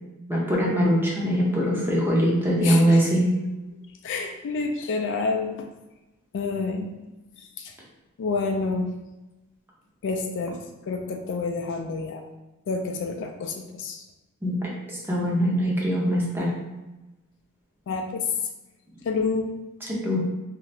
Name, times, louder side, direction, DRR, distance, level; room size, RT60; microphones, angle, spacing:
voice 1, 0.3-3.3 14.4-16.5 20.0-20.2, equal, 10° right, -4 dB, 0.6 m, -22 dB
voice 2, 2.6-3.0 4.0-5.7 6.3-6.9 7.6-7.7 8.2-9.0 10.0-10.6 10.9-12.2 12.7-14.0 17.9-18.2 19.1-19.5, left 4 dB, 55° left, 3 dB, 0.3 m, -28 dB
2.7 x 2.4 x 3.2 m, 1.0 s
head